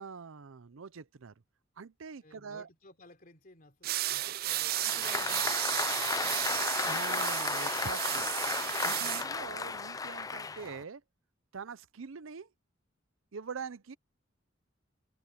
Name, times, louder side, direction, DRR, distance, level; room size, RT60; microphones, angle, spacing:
voice 1, 0.0-1.3 1.8-2.7 6.8-8.3 8.8-11.0 11.5-12.5 13.3-14.0, right 5 dB, 85° right, 0.6 m, -43 dB
voice 2, 2.2-6.7, left 1 dB, 45° left, 3.4 m, -58 dB
sound 1, 3.8-9.3, right 15 dB, 50° right, 0.3 m, -33 dB
Applause, 4.5-10.8, left 4 dB, 20° left, 0.4 m, -34 dB
head